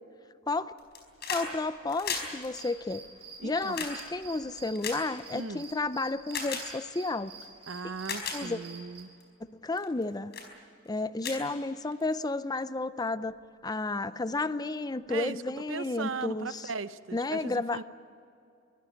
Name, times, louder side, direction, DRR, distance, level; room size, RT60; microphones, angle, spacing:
sound 1, 0.8-1.5 1.8-5.7 6.3-6.7 7.4-7.5 7.9-8.4 9.0-9.2 9.8-10.0 10.3-10.5 10.9-11.0 11.2-12.1 13.3-13.4, left 5 dB, 55° left, 4.7 m, -36 dB
voice 1, 1.3-3.0 3.4-7.3 8.3-8.6 9.5-10.3 10.9-13.4 13.6-16.7 17.1-17.8, left 3 dB, 20° left, 14 dB, 0.5 m, -32 dB
sound 2, 2.4-9.0, right 4 dB, 30° right, 3.1 m, -49 dB
voice 2, 3.4-3.9 5.3-5.6 7.7-9.1 15.1-15.4 15.7-17.8, right 4 dB, 75° right, 14 dB, 0.8 m, -38 dB
23.5 x 16.0 x 9.8 m, 2.5 s
head